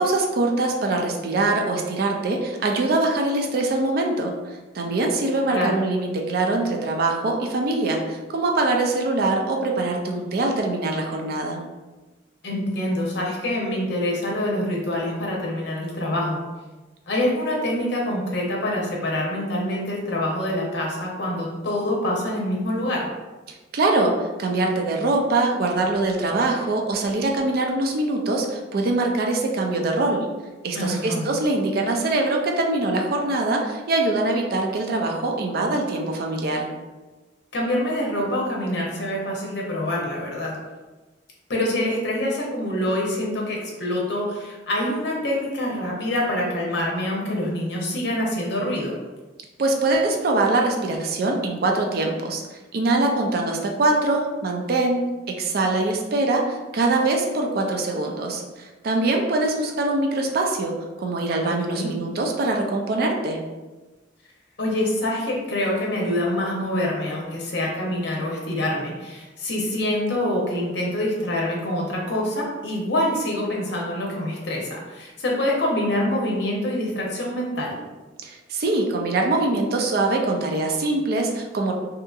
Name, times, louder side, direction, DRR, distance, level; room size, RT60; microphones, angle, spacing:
voice 1, 0.0-4.3 4.7-11.6 23.7-30.3 30.6-36.7 49.6-52.4 52.7-55.1 55.4-60.7 61.0-63.4 78.2-81.7, right 2 dB, 55° right, 1 dB, 0.4 m, -23 dB
voice 2, 5.5-5.8 12.4-16.4 17.1-23.1 30.7-31.3 37.5-40.6 41.5-48.9 61.4-61.9 64.6-77.8, left 1 dB, 65° left, -2 dB, 0.7 m, -25 dB
2.7 x 2.6 x 2.3 m, 1.2 s
head